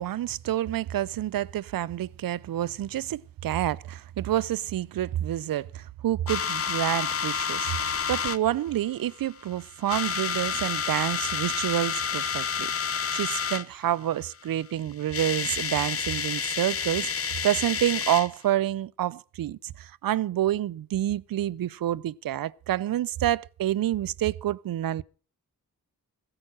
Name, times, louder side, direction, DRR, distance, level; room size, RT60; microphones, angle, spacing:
voice 1, 0.0-25.0, right 12 dB, 65° right, 0.5 m, -28 dB
sound 1, 6.3-8.4 9.1-9.5 9.8-13.7 14.7-14.8 15.0-18.3, left 6 dB, 40° left, 0.7 m, -29 dB
14.5 x 8.8 x 6.3 m
cardioid pair, 55°, 37 cm